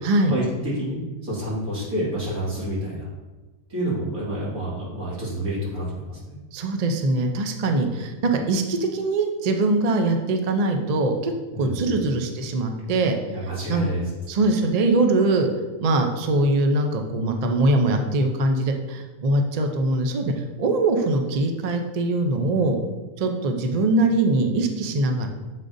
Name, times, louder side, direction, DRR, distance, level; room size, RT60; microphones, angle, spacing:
voice 1, 0.0-0.3 6.5-11.3 11.6-13.2 13.4-13.9 14.3-15.5 15.8-22.8 23.2-25.3, right 2 dB, 60° right, 4 dB, 0.4 m, -22 dB
voice 2, 0.8-3.1 3.7-6.2 11.5-11.9 13.3-14.0, right 1 dB, 85° right, -8 dB, 2.6 m, -28 dB
7.5 x 4.9 x 2.6 m, 1.2 s
omnidirectional pair, 1.5 m